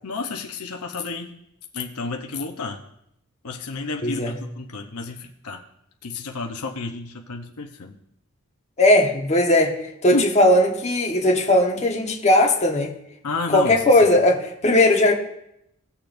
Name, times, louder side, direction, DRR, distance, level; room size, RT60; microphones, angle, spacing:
voice 1, 0.0-1.4 1.7-2.8 3.4-5.6 6.0-7.9 10.1-10.3 13.2-14.0, left 3 dB, 75° left, 0.8 m, -30 dB
voice 2, 4.0-4.4 8.8-12.9 13.5-15.1, left 1 dB, 30° left, 1.3 m, -18 dB
17.5 x 6.9 x 2.6 m
head